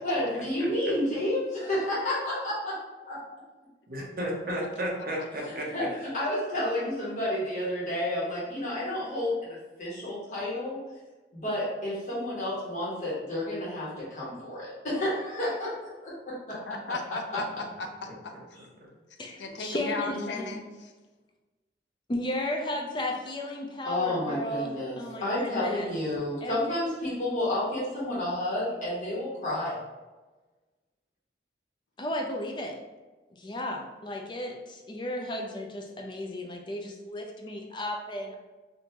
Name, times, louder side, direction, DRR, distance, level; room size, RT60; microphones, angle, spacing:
voice 1, 0.0-2.8 3.0-3.2 5.5-10.8 11.3-16.1 18.5-18.6 20.1-20.6 23.8-29.8, left 1 dB, 45° left, -8 dB, 1.3 m, -30 dB
voice 2, 3.9-5.7 18.0-18.4 18.8-18.9, equal, 50° right, -2 dB, 0.7 m, -33 dB
voice 3, 16.7-18.3 19.4-20.9, left 3 dB, 85° left, 4 dB, 0.5 m, -36 dB
voice 4, 19.2-20.2 22.1-25.9 26.4-26.8 32.0-32.8 33.3-38.4, left 1 dB, 25° left, 1 dB, 0.4 m, -34 dB
3.6 x 2.6 x 2.9 m, 1.2 s
head